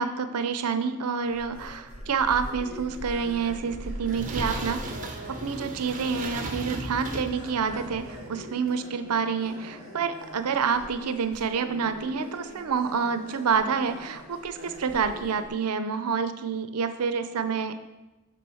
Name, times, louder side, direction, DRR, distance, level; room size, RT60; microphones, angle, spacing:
voice 1, 0.0-5.0 5.3-17.7, right 6 dB, 85° right, 10 dB, 0.5 m, -28 dB
sound 1, 1.2-15.5, equal, 5° right, 2.8 m, -42 dB
sound 2, 3.6-8.5, right 2 dB, 35° right, 0.9 m, -37 dB
6.2 x 4.7 x 6.2 m, 1.1 s
head